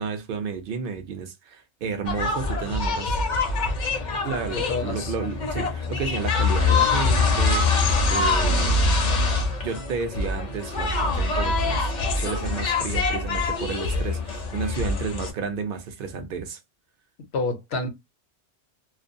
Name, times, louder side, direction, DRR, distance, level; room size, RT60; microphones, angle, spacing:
voice 1, 0.0-3.1 4.2-8.9 9.6-16.6, right 5 dB, 60° right, 0.7 m, -32 dB
sound 1, 2.0-15.3, left 3 dB, 50° left, 0.6 m, -24 dB
voice 2, 4.5-5.1 17.3-17.9, left 3 dB, 70° left, 0.9 m, -28 dB
2.4 x 2.2 x 2.5 m
omnidirectional pair, 1.2 m